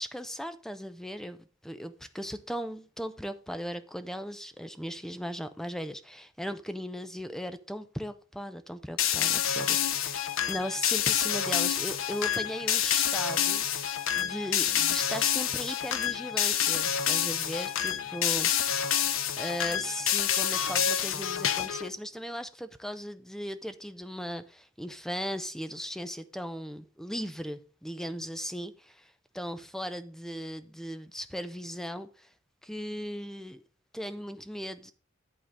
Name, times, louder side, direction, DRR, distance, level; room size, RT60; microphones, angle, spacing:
voice 1, 0.0-10.2 10.5-13.7 14.1-19.0 19.4-32.3 32.6-33.6 33.9-34.9, equal, ahead, 0.5 m, -37 dB
sound 1, 9.0-21.9, left 9 dB, 85° left, 0.6 m, -28 dB
11.0 x 3.8 x 6.4 m
head